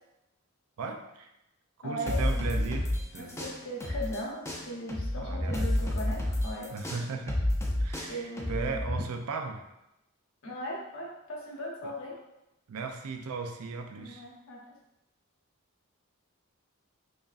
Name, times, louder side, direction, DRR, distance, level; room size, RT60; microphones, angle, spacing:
voice 1, 0.8-1.3 1.8-3.4 5.2-5.9 6.7-9.6 11.8-11.9 12.7-14.3, right 4 dB, 90° right, 5 dB, 0.5 m, -37 dB
voice 2, 1.8-2.5 3.2-6.7 7.0-7.1 8.1-8.7 10.4-12.2 13.9-14.6, equal, 65° left, -2 dB, 1.0 m, -38 dB
sound 1, 2.1-4.2 4.4-9.0, left 1 dB, 15° left, 0.5 m, -30 dB
4.9 x 2.6 x 2.5 m, 0.89 s
head